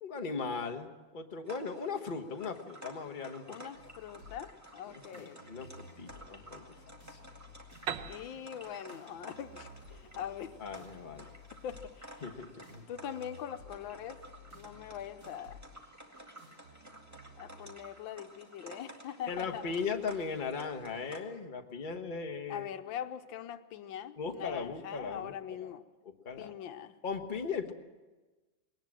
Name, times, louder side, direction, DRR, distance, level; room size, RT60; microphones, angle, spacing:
voice 1, 0.0-3.7 4.9-6.6 7.1-7.2 10.6-11.3 12.2-12.8 19.3-22.7 24.2-25.7 26.2-26.5 27.0-27.7, left 5 dB, 30° left, 4 dB, 1.3 m, -38 dB
sound 1, 1.4-21.2, right 1 dB, 10° right, 2.0 m, -53 dB
voice 2, 3.5-5.7 8.0-9.7 10.0-10.5 11.6-12.2 12.9-14.2 14.5-15.6 17.4-19.6 22.5-25.8 26.4-27.0, left 9 dB, 85° left, 9 dB, 1.6 m, -42 dB
sound 2, 3.7-17.7, left 2 dB, 55° right, 5.7 m, -55 dB
Piano, 7.9-11.5, right 8 dB, 75° right, 1.7 m, -44 dB
21.0 x 19.0 x 7.5 m, 1.2 s
omnidirectional pair, 2.1 m